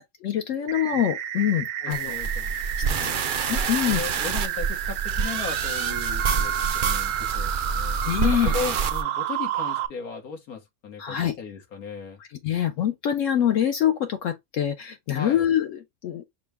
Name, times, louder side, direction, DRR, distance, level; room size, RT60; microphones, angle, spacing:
voice 1, 0.0-2.1 3.0-3.1 3.5-4.0 8.0-8.5 11.0-11.3 12.4-16.2, left 10 dB, 70° left, 0.8 m, -25 dB
sound 1, 0.7-9.9, right 11 dB, 85° right, 1.1 m, -30 dB
voice 2, 1.8-3.2 3.8-12.2 15.1-15.5, left 5 dB, 90° left, 1.7 m, -37 dB
sound 2, 1.9-9.0, right 6 dB, 60° right, 0.5 m, -28 dB
6.1 x 2.1 x 3.3 m
omnidirectional pair, 1.5 m